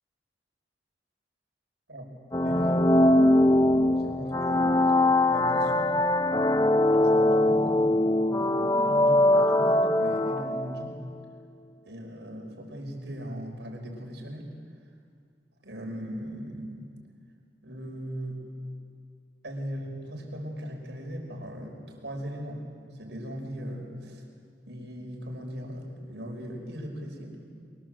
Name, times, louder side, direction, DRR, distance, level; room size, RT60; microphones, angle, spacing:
sound 1, 2.3-10.9, left 1 dB, 20° left, 0.6 m, -22 dB
voice 1, 2.4-5.0 5.2-6.0 6.6-11.0 11.9-14.6 15.6-17.0 17.6-18.4 19.4-22.7 23.0-24.2 24.7-27.4, equal, 80° right, 1 dB, 5.3 m, -39 dB
24.5 x 23.0 x 7.7 m, 2.2 s
head